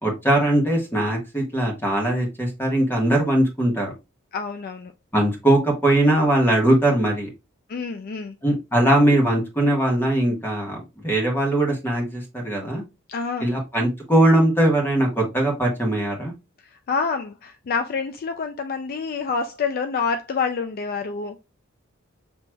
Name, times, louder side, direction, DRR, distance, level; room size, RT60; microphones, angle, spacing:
voice 1, 0.0-3.9 5.1-7.3 8.4-10.8 11.0-12.8 13.4-16.3, right 1 dB, 10° left, 1.3 m, -20 dB
voice 2, 4.3-4.9 7.7-8.3 13.1-13.5 16.9-21.4, left 5 dB, 45° left, 0.4 m, -27 dB
6.1 x 3.0 x 2.2 m
head